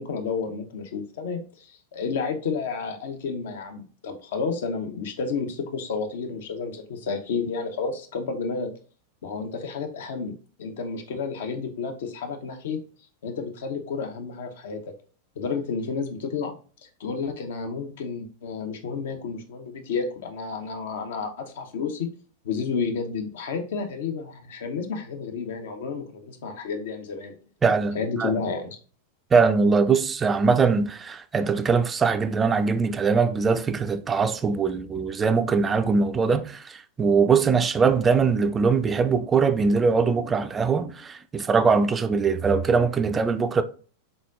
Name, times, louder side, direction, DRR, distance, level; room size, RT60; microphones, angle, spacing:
voice 1, 0.0-8.7 9.2-10.3 10.6-12.8 13.2-14.9 15.4-16.5 16.8-22.1 22.4-27.4 27.9-28.8, left 5 dB, 55° left, 0.7 m, -31 dB
voice 2, 27.6-28.3 29.3-43.6, right 5 dB, 20° right, 0.3 m, -22 dB
4.1 x 3.8 x 2.4 m
figure-of-eight pair, 90°, 0 cm